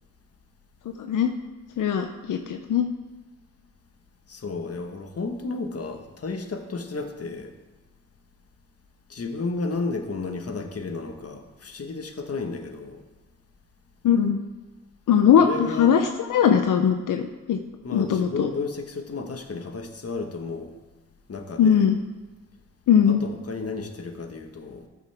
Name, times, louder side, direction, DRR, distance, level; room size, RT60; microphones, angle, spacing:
voice 1, 1.0-1.3 1.8-2.9 14.0-14.4 15.1-16.0 16.3-17.6 17.9-18.5 21.6-22.0 22.9-23.2, left 8 dB, 85° left, 6 dB, 0.6 m, -20 dB
voice 2, 4.3-7.5 9.1-13.0 15.4-15.9 17.8-20.7 21.3-21.9 23.0-24.9, left 3 dB, 50° left, 5 dB, 1.2 m, -32 dB
13.0 x 7.1 x 3.4 m, 1.2 s
cardioid pair, 50°, 31 cm